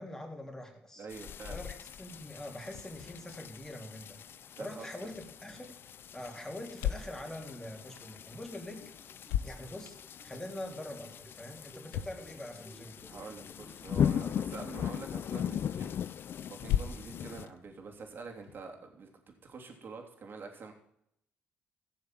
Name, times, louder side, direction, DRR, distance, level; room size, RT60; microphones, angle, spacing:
voice 1, 0.0-1.1 1.5-4.2 4.6-5.7 6.1-8.9 9.4-13.0, left 1 dB, 10° left, 2 dB, 3.6 m, -44 dB
voice 2, 1.0-1.6 4.3-4.8 13.1-15.9 16.5-19.1 19.4-20.7, right 4 dB, 50° right, 2 dB, 3.2 m, -46 dB
sound 1, 1.1-17.4, left 8 dB, 55° left, 0.5 m, -39 dB
sound 2, 5.0-18.6, left 11 dB, 85° left, 0.8 m, -41 dB
sound 3, 6.8-14.6, equal, 5° right, 2.1 m, -60 dB
16.5 x 6.7 x 7.6 m, 0.74 s
supercardioid pair, 60°, 4 cm